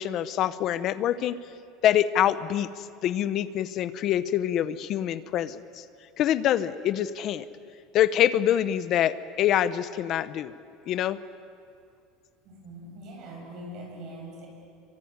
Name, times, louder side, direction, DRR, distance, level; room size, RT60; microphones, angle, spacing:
voice 1, 0.0-1.4 1.8-5.6 6.2-7.4 7.9-10.5 10.9-11.2, left 11 dB, 35° left, 14 dB, 0.9 m, -25 dB
voice 2, 12.4-14.5, right 1 dB, 40° right, 1 dB, 7.6 m, -42 dB
26.0 x 24.0 x 9.6 m, 2.4 s
cardioid pair, 180°, 0 cm